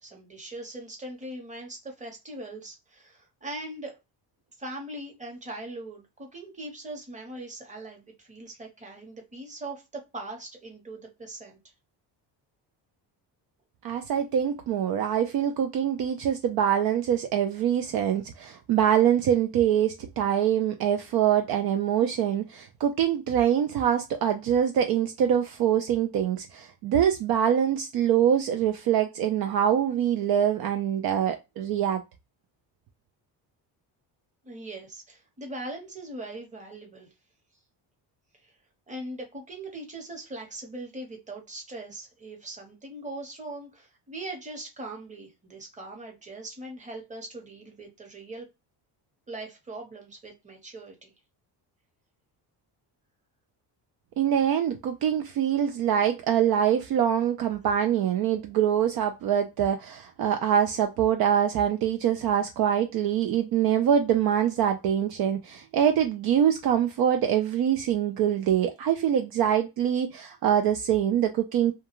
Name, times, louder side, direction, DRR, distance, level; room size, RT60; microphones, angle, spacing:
voice 1, 0.0-4.0 4.6-11.6 34.4-37.1 38.4-38.5 38.9-48.5 49.3-51.1, right 2 dB, 15° right, 0.9 m, -40 dB
voice 2, 13.8-32.0 54.2-71.7, right 9 dB, 60° right, 0.5 m, -24 dB
2.3 x 2.3 x 2.9 m
cardioid pair, 110°, 43 cm